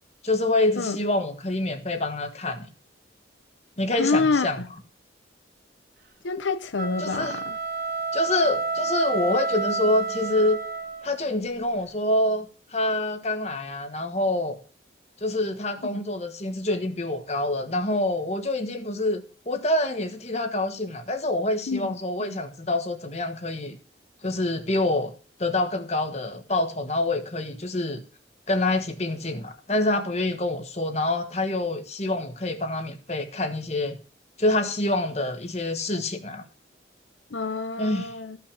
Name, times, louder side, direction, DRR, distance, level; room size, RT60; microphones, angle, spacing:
voice 1, 0.2-2.7 3.8-4.6 7.0-7.4 8.1-10.6 11.0-12.5 12.7-14.6 15.2-23.8 24.2-25.1 25.4-28.0 28.5-34.0 34.4-36.4 37.8-38.1, left 2 dB, 35° left, 1.3 m, -26 dB
voice 2, 4.0-4.7 6.2-7.5 15.8-16.1 21.7-21.9 22.2-22.3 37.3-38.4, left 4 dB, 85° left, 0.8 m, -27 dB
sound 1, 6.7-11.2, right 3 dB, 50° right, 2.6 m, -29 dB
14.5 x 6.0 x 6.9 m
head